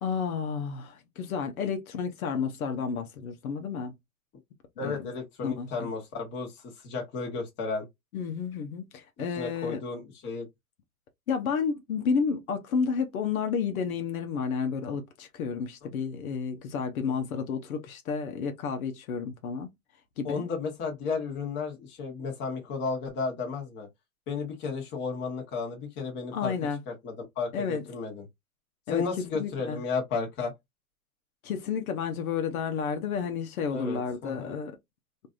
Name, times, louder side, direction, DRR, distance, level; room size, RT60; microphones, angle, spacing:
voice 1, 0.0-3.9 4.8-5.1 5.4-5.9 8.1-9.8 11.3-19.7 20.2-20.4 26.3-26.8 27.5-27.8 28.9-29.0 29.3-29.8 31.4-34.8, left 6 dB, 70° left, 0.9 m, -31 dB
voice 2, 4.8-7.9 9.4-10.5 15.8-15.9 20.2-23.9 24.3-26.5 26.9-28.2 28.9-30.5 33.7-34.6, left 4 dB, 25° left, 1.2 m, -33 dB
3.2 x 2.6 x 2.4 m
hypercardioid pair, 145°, 43 cm